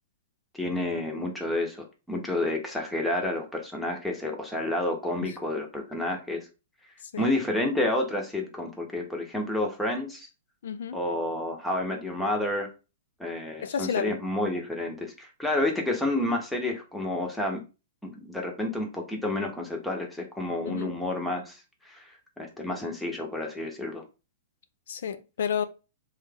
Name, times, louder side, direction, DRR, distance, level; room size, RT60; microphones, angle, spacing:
voice 1, 0.5-6.5 7.2-10.3 10.9-12.7 13.2-17.6 18.0-24.0, left 1 dB, 5° left, 0.8 m, -30 dB
voice 2, 10.6-11.0 13.6-14.1 20.7-20.9 24.9-25.6, left 7 dB, 70° left, 0.4 m, -31 dB
3.1 x 2.3 x 3.3 m
hypercardioid pair, 135°, 0 cm